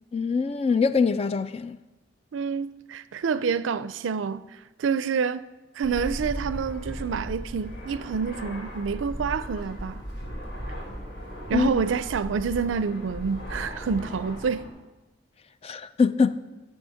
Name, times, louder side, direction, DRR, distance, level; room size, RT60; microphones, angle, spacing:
voice 1, 0.1-1.8 11.5-11.7 15.6-16.4, left 5 dB, 30° left, 0.3 m, -23 dB
voice 2, 2.3-4.4 4.8-5.4 5.8-10.0 11.5-14.7, right 6 dB, 85° right, 0.4 m, -28 dB
Fixed-wing aircraft airplane, 5.8-14.7, equal, 60° left, 2.2 m, -37 dB
8.6 x 6.3 x 7.0 m
head